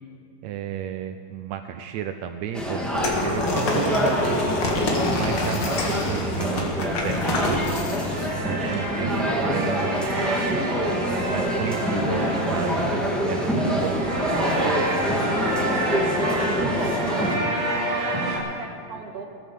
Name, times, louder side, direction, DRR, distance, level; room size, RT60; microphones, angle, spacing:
voice 1, 0.4-4.5 5.1-7.6 8.5-10.4 11.1-14.0 14.3-14.8, right 10 dB, 90° right, 8 dB, 1.6 m, -33 dB
sound 1, 2.5-17.3, equal, ahead, 0.7 m, -26 dB
sound 2, 2.9-8.3, left 2 dB, 45° left, 2.2 m, -27 dB
sound 3, 8.1-18.4, right 1 dB, 70° right, 4.0 m, -28 dB
voice 2, 16.8-17.3 17.9-19.2, right 4 dB, 45° right, 2 dB, 1.3 m, -38 dB
18.0 x 9.4 x 7.0 m, 2.4 s
omnidirectional pair, 3.7 m